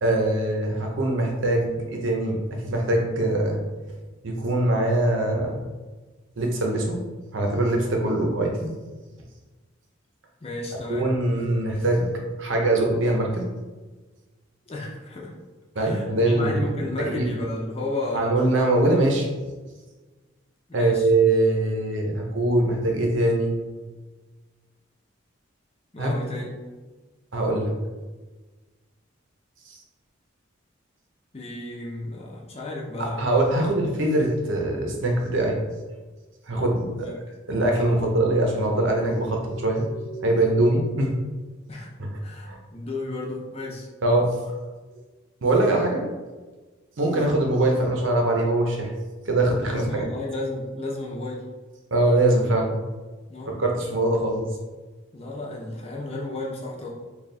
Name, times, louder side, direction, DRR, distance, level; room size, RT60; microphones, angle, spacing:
voice 1, 0.0-3.6 4.2-5.6 6.4-7.0 7.3-8.7 10.9-12.1 12.4-13.5 15.7-16.7 17.0-17.3 18.1-19.3 20.7-23.6 26.0-26.1 27.3-27.7 33.0-35.6 36.5-37.1 37.5-41.1 42.0-42.1 42.4-42.6 44.0-44.3 45.4-46.0 47.0-48.9 49.2-50.0 51.9-52.7 53.6-54.4, right 2 dB, 70° right, 1 dB, 0.7 m, -22 dB
voice 2, 10.4-11.1 14.7-15.3 15.7-18.4 20.7-21.1 25.9-26.5 31.3-33.3 37.0-37.2 41.7-41.9 42.2-43.9 47.0-47.3 49.6-51.5 53.3-53.5 55.1-56.9, left 2 dB, 30° left, -3 dB, 0.6 m, -33 dB
3.3 x 2.3 x 4.0 m, 1.3 s
head